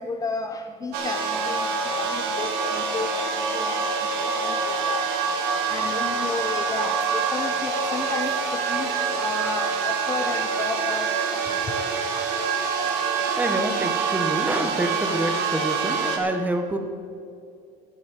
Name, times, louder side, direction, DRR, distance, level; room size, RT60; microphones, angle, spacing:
voice 1, 0.0-5.0 5.7-11.6 12.7-12.9, left 4 dB, 20° left, 5 dB, 0.7 m, -33 dB
sound 1, 0.9-16.2, right 5 dB, 85° right, 1.9 m, -26 dB
voice 2, 13.4-16.8, right 1 dB, 10° right, 6 dB, 1.1 m, -27 dB
15.0 x 6.3 x 8.1 m, 2.4 s
cardioid pair, 150°, 16 cm